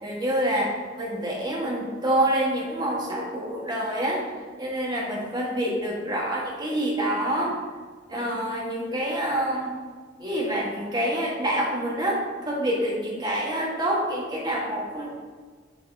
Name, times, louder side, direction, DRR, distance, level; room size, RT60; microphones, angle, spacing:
voice 1, 0.0-4.2 4.6-7.6 8.1-9.8 10.2-15.2, right 1 dB, 20° right, -4 dB, 1.4 m, -27 dB
7.2 x 5.3 x 2.7 m, 1.6 s
head